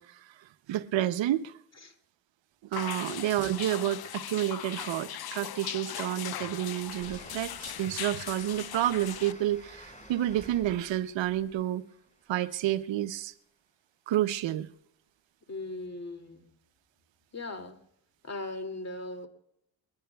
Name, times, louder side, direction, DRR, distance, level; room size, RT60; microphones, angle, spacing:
voice 1, 0.0-1.5 2.7-11.8 12.3-13.3 14.1-14.7, right 13 dB, 70° right, 0.8 m, -30 dB
sound 1, 2.7-9.3, left 11 dB, 50° left, 0.7 m, -39 dB
Train, 5.5-13.1, equal, 15° left, 4.7 m, -52 dB
voice 2, 15.5-16.5 17.3-17.8 18.2-19.3, left 2 dB, 35° left, 2.5 m, -38 dB
29.0 x 21.0 x 2.3 m
supercardioid pair, 50°, 47 cm